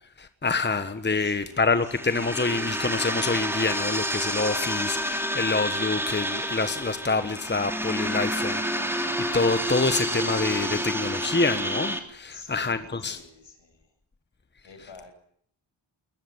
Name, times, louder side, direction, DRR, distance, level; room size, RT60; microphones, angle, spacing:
voice 1, 0.2-13.2, left 3 dB, 25° left, 1.3 m, -27 dB
voice 2, 1.1-1.8 12.3-13.9 14.6-15.1, left 3 dB, 70° left, 6.9 m, -48 dB
sound 1, 1.7-12.0, equal, 5° right, 3.1 m, -29 dB
21.5 x 20.5 x 9.6 m
wide cardioid pair, 120°, 46 cm